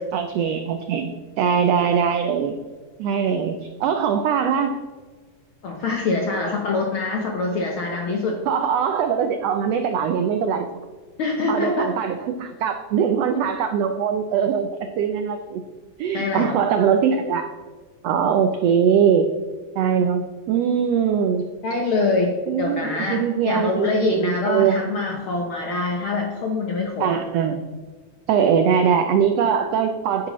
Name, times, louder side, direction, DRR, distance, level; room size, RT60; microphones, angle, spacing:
voice 1, 0.1-2.6 3.0-4.8 8.5-10.7 11.5-14.7 15.0-15.6 16.0-17.5 18.0-19.3 19.8-21.5 22.5-24.9 27.0-27.6 28.3-30.3, right 7 dB, 90° right, 7 dB, 1.4 m, -21 dB
voice 2, 5.6-8.4 11.2-11.9 16.1-16.6 21.6-27.1, left 3 dB, 70° left, 1 dB, 1.3 m, -24 dB
10.5 x 10.0 x 3.1 m, 1.4 s
omnidirectional pair, 3.6 m